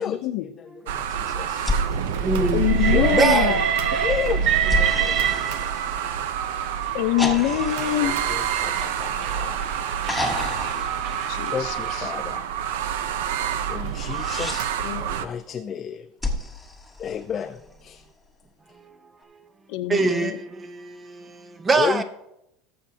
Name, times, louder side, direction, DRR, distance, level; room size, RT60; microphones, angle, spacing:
voice 1, 0.0-0.4 2.5-3.6 6.9-8.2 11.0-12.1 14.8-15.1 19.7-20.4, left 14 dB, 60° left, 0.7 m, -25 dB
voice 2, 0.6-1.7 2.8-3.6 3.9-5.9 8.0-10.0 11.5-12.5 13.7-14.7 15.2-16.1 17.0-18.0 21.8-22.0, left 8 dB, 25° left, 0.4 m, -31 dB
sound 1, 0.9-15.2, right 8 dB, 80° right, 0.7 m, -27 dB
voice 3, 1.2-3.6 4.8-5.0 8.6-8.8 9.9-10.0 18.7-19.5 19.9-22.0, right 3 dB, 15° right, 0.8 m, -26 dB
sound 2, 1.6-3.2 4.7-6.4 7.2-9.5 10.0-11.9 13.8-14.6 16.2-17.7 19.2-19.3, left 1 dB, 5° left, 1.3 m, -31 dB
Train, 2.6-6.0 6.9-12.1, right 8 dB, 50° right, 0.9 m, -27 dB
17.5 x 7.4 x 2.8 m
supercardioid pair, 145°, 0 cm